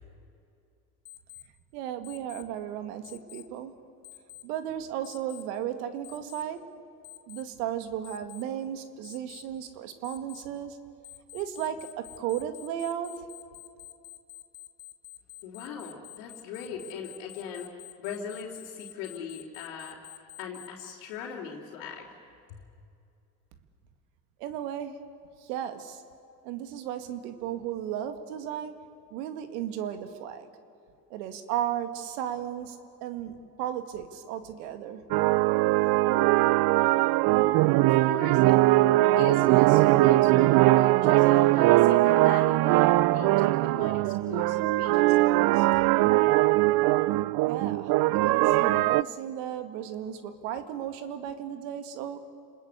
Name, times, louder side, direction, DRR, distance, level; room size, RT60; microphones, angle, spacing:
Alarm, 1.0-1.4 2.0-2.4 3.0-3.4 4.0-4.4 5.0-5.4 6.0-6.4 7.0-7.4 8.0-8.4 9.0-9.4 10.0-10.4 11.0-20.9, left 16 dB, 50° left, 1.7 m, -47 dB
voice 1, 1.7-3.7 4.4-6.6 7.3-10.8 11.3-13.2 24.4-25.0 25.4-26.0 26.4-28.7 29.1-30.5 31.1-35.0 47.4-52.2, right 10 dB, 75° right, 9 dB, 2.1 m, -35 dB
voice 2, 15.4-20.1 20.4-22.1 22.5-22.6 37.8-38.7 39.2-45.8, left 7 dB, 75° left, -4 dB, 3.6 m, -40 dB
sound 1, 35.1-49.0, right 18 dB, 50° right, 0.6 m, -21 dB
29.5 x 20.5 x 8.3 m, 2.5 s
hypercardioid pair, 85°, 48 cm